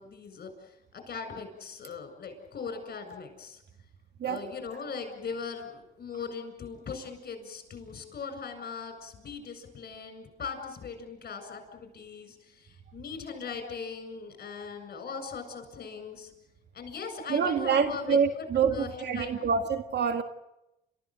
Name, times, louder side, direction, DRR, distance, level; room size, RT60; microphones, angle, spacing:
voice 1, 0.0-3.6 4.2-16.3 16.7-18.4 18.7-19.6, left 5 dB, 50° left, 7.6 m, -40 dB
voice 2, 17.3-20.2, right 6 dB, 55° right, 1.8 m, -26 dB
29.5 x 15.0 x 9.3 m
cardioid pair, 90°, 20 cm